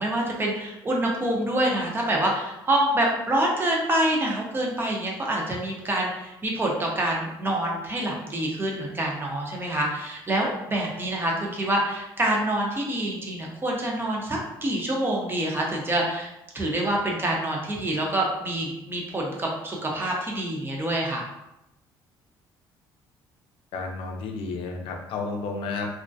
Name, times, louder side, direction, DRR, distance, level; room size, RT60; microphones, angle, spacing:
voice 1, 0.0-16.3 16.5-21.2, right 1 dB, 25° right, -1 dB, 0.7 m, -26 dB
voice 2, 23.7-25.9, left 4 dB, 75° left, 2 dB, 0.5 m, -31 dB
2.3 x 2.1 x 2.6 m, 0.89 s
cardioid pair, 95°, 9 cm